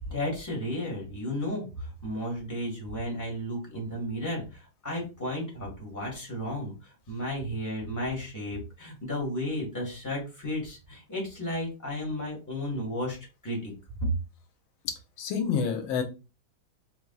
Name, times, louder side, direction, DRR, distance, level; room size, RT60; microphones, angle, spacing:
voice 1, 0.0-13.2 13.4-13.7 14.0-14.1, left 1 dB, 10° left, -2 dB, 1.6 m, -33 dB
voice 2, 15.2-16.0, left 6 dB, 90° left, 6 dB, 1.6 m, -28 dB
4.7 x 3.4 x 2.3 m, 0.29 s
omnidirectional pair, 2.2 m